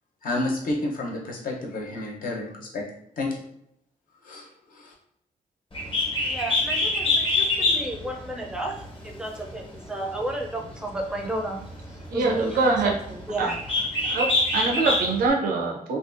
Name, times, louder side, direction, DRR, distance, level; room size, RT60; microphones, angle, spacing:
voice 1, 0.2-2.8 3.2-3.4 4.2-4.9, left 2 dB, 70° left, -1 dB, 0.7 m, -30 dB
Bird, 5.7-15.3, left 2 dB, 35° left, 0.7 m, -27 dB
voice 2, 6.3-11.6 12.1-13.0 13.3-13.6 14.6-14.7, right 2 dB, 5° right, 1 dB, 0.4 m, -32 dB
voice 3, 12.1-13.0 13.4-13.5 14.0-16.0, right 3 dB, 90° right, 1 dB, 0.5 m, -24 dB
2.5 x 2.3 x 2.4 m, 0.73 s
cardioid pair, 110°, 15 cm